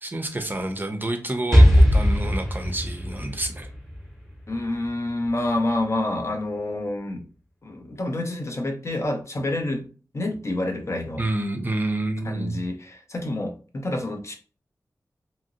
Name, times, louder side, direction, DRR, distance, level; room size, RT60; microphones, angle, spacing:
voice 1, 0.0-3.7 11.2-12.6, right 2 dB, 30° right, 6 dB, 0.5 m, -28 dB
Explosion, 1.5-5.3, equal, 5° left, 0.9 m, -19 dB
voice 2, 4.5-7.2 7.6-9.9 10.1-11.2 12.2-14.3, left 1 dB, 45° left, 3 dB, 0.6 m, -28 dB
2.8 x 2.6 x 2.7 m, 0.38 s
wide cardioid pair, 80°, 7 cm